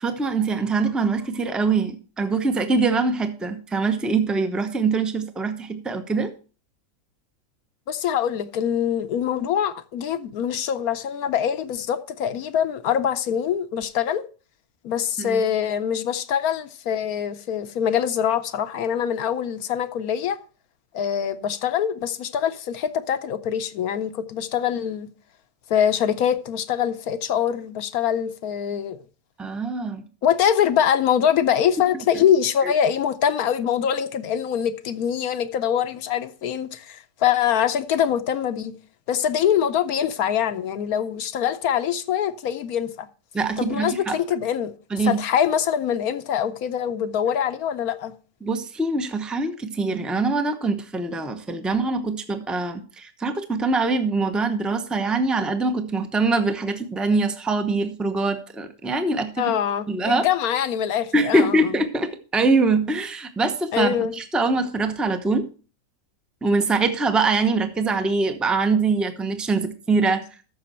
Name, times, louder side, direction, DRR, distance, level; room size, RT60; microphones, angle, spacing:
voice 1, 0.0-6.3 15.2-15.4 29.4-30.1 32.1-32.2 32.6-32.7 43.3-44.2 44.9-45.2 48.4-59.5 59.9-60.3 61.1-65.5 66.4-70.2, right 3 dB, ahead, 0.5 m, -23 dB
voice 2, 7.9-14.2 14.8-20.4 20.9-25.1 25.7-29.0 30.2-38.7 39.1-43.1 43.6-44.7 45.0-48.1 59.4-61.7 63.7-64.1, left 9 dB, 65° left, 1.1 m, -24 dB
13.5 x 6.4 x 4.3 m
omnidirectional pair, 1.8 m